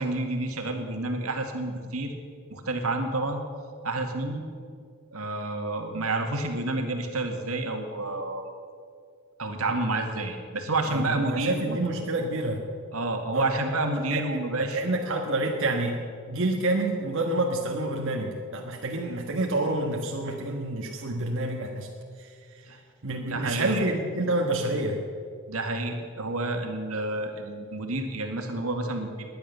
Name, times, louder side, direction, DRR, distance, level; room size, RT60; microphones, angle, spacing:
voice 1, 0.0-2.2 2.5-3.4 3.8-4.5 5.1-8.4 9.4-11.8 12.9-14.8 22.7-22.8 23.2-23.9 25.5-29.3, right 2 dB, 85° right, 4 dB, 2.0 m, -29 dB
voice 2, 10.9-12.6 13.3-13.6 14.1-14.2 14.6-16.0 16.3-21.9 22.2-22.3 23.0-25.0, right 2 dB, 60° right, 0 dB, 1.5 m, -28 dB
19.5 x 10.5 x 6.9 m, 2.2 s
head